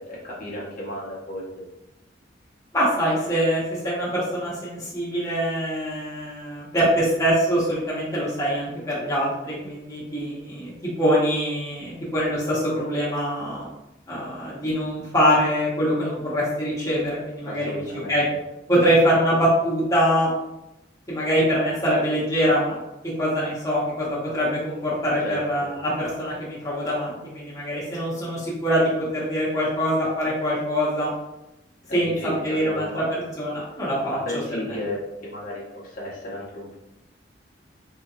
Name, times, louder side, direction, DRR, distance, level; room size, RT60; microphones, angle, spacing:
voice 1, 0.0-1.4 17.4-18.4 25.2-25.7 31.9-33.1 34.1-36.7, left 1 dB, 45° left, -6 dB, 1.0 m, -33 dB
voice 2, 2.7-13.7 14.1-17.8 18.1-18.2 18.7-20.3 21.1-22.8 23.2-31.1 31.9-32.1 32.4-33.0 33.4-34.4, equal, 20° left, -7 dB, 0.9 m, -24 dB
3.7 x 2.9 x 2.4 m, 0.91 s
head